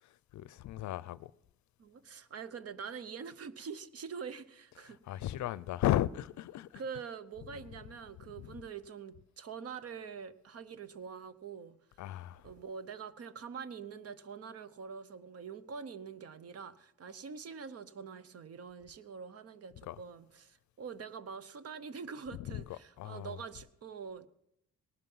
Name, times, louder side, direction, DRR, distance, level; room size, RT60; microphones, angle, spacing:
voice 1, 0.0-1.3 4.8-6.8 7.5-7.6 8.4-8.6 12.0-12.5 19.8-20.0 22.3-23.4, left 13 dB, 70° left, 0.5 m, -36 dB
voice 2, 1.8-5.0 6.7-11.8 12.4-24.3, right 6 dB, 55° right, 0.9 m, -45 dB
18.0 x 11.5 x 5.5 m
cardioid pair, 90°, 30 cm